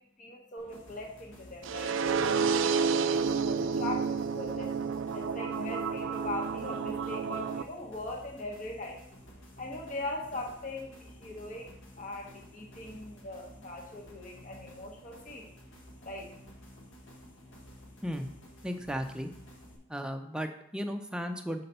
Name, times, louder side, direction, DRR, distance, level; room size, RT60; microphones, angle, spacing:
voice 1, 0.0-9.0 9.6-11.7 12.0-15.5 16.0-16.3, left 2 dB, 40° left, 0 dB, 1.0 m, -41 dB
sound 1, 0.6-19.8, equal, 85° left, 1.4 m, -52 dB
sound 2, 1.6-7.6, right 5 dB, 70° right, 0.3 m, -30 dB
voice 2, 18.6-19.3 19.9-21.6, equal, 5° right, 5 dB, 0.4 m, -35 dB
5.6 x 4.0 x 5.4 m, 0.76 s
head